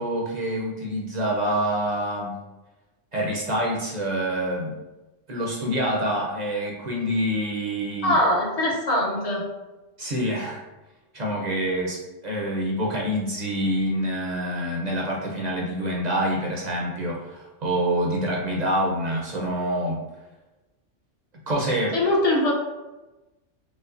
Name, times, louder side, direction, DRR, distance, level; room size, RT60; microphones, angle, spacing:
voice 1, 0.0-2.4 3.1-4.8 5.3-8.2 10.0-10.6 11.1-20.0 21.5-22.0, equal, 45° right, -2 dB, 0.6 m, -26 dB
voice 2, 8.0-9.5 21.9-22.5, left 1 dB, 40° left, -3 dB, 0.6 m, -22 dB
5.1 x 2.1 x 2.4 m, 1.1 s
omnidirectional pair, 1.2 m